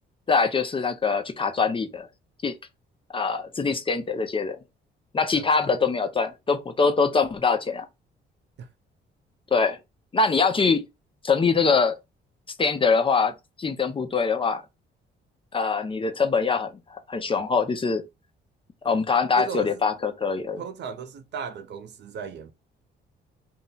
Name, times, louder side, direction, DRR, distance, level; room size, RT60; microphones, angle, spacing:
voice 1, 0.3-2.1 2.4-2.5 3.1-4.6 5.1-7.9 9.5-9.8 10.1-10.8 11.2-12.0 12.6-13.3 13.6-14.6 15.5-18.0 18.8-20.6, left 5 dB, 25° left, 0.6 m, -23 dB
voice 2, 5.3-5.7 8.6-8.7 19.4-19.8 20.6-22.5, right 6 dB, 60° right, 0.6 m, -36 dB
2.7 x 2.0 x 3.8 m
cardioid pair, 90°, 20 cm